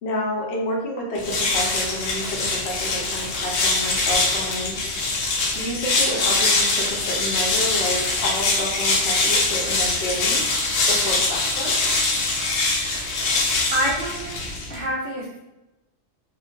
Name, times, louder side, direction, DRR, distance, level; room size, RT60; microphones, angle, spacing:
voice 1, 0.0-4.9 5.5-10.4 10.9-12.0, left 1 dB, 65° left, -1 dB, 0.9 m, -29 dB
sound 1, 1.1-14.8, left 3 dB, 90° left, 1.0 m, -23 dB
voice 2, 13.7-14.3 14.7-15.4, equal, 55° right, -5 dB, 0.7 m, -26 dB
2.3 x 2.2 x 2.6 m, 0.95 s
omnidirectional pair, 1.3 m